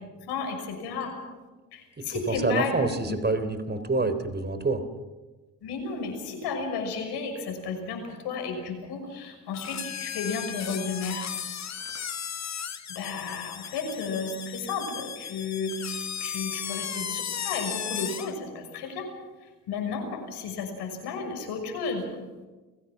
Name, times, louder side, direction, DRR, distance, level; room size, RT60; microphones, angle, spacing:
voice 1, 0.2-1.2 1.7-2.7 3.1-3.2 5.6-11.3 12.9-19.1 19.7-22.1, left 4 dB, 70° left, 4 dB, 6.2 m, -33 dB
voice 2, 2.0-4.8, right 3 dB, 25° right, 10 dB, 3.7 m, -27 dB
sound 1, 9.5-18.4, left 8 dB, 40° left, 1.4 m, -35 dB
30.0 x 16.5 x 6.1 m, 1.2 s
hypercardioid pair, 60°, 41 cm